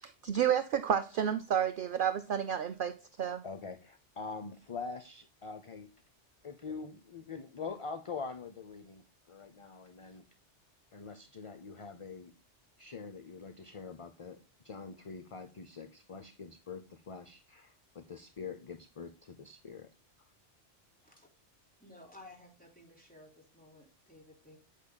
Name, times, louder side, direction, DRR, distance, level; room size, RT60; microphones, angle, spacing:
voice 1, 0.0-3.4, right 9 dB, 55° right, 0.6 m, -31 dB
voice 2, 3.4-5.9 6.4-10.2 10.9-12.3 12.8-14.4 14.6-19.9, left 5 dB, 35° left, 0.6 m, -44 dB
voice 3, 21.8-24.6, left 1 dB, 5° left, 3.5 m, -55 dB
8.5 x 8.4 x 2.2 m
omnidirectional pair, 1.2 m